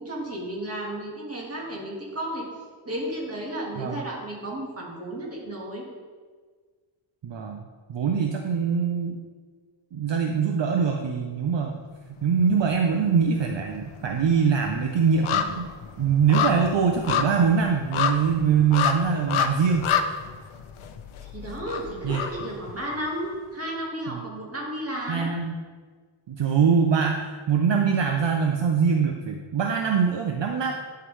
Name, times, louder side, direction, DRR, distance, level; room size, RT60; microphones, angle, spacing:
voice 1, 0.0-2.5 2.9-5.8 21.2-25.3, right 1 dB, 30° right, -3 dB, 1.7 m, -33 dB
voice 2, 7.2-7.6 7.9-9.2 9.9-11.8 12.2-15.7 16.0-19.9 22.0-22.2 24.1-24.2 25.1-25.6 26.3-30.7, right 6 dB, 60° right, 3 dB, 0.6 m, -23 dB
sound 1, 12.3-13.1 13.3-23.3 23.7-23.8, left 7 dB, 80° left, 0.7 m, -29 dB
11.0 x 5.9 x 3.2 m, 1.5 s
wide cardioid pair, 170°, 49 cm